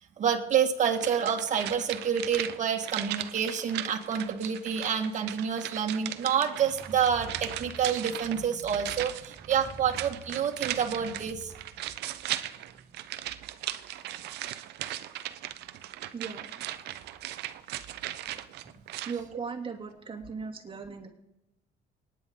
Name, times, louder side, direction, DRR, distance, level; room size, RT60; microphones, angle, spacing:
voice 1, 0.2-11.5, right 7 dB, 45° right, 3 dB, 1.9 m, -28 dB
sound 1, 0.8-19.2 19.5-19.6, right 13 dB, 80° right, 0.7 m, -38 dB
voice 2, 16.1-16.4 19.0-21.1, right 5 dB, 30° right, 1 dB, 2.5 m, -37 dB
25.0 x 10.0 x 3.8 m, 0.91 s
cardioid pair, 110°, 17 cm